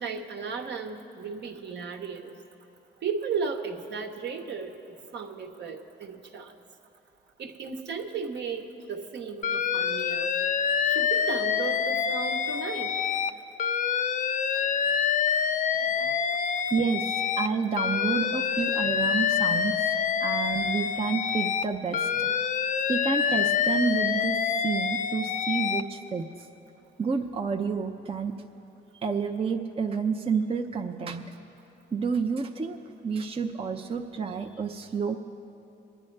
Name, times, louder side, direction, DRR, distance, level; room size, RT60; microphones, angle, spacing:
voice 1, 0.0-2.3 3.0-4.8 5.1-6.6 7.4-10.3 10.9-13.0, right 5 dB, 60° right, 3 dB, 1.1 m, -35 dB
Alarm, 9.4-13.3 13.6-17.5 17.8-21.6 21.9-25.8, left 7 dB, 40° left, 0.5 m, -26 dB
voice 2, 16.7-17.1 17.4-19.9 20.2-22.4 22.9-24.4 24.6-26.2 27.0-28.4 28.9-31.2 31.9-32.8 33.0-35.2, right 5 dB, 30° right, 4 dB, 0.6 m, -29 dB
23.5 x 9.9 x 3.3 m, 2.8 s
cardioid pair, 90°, 20 cm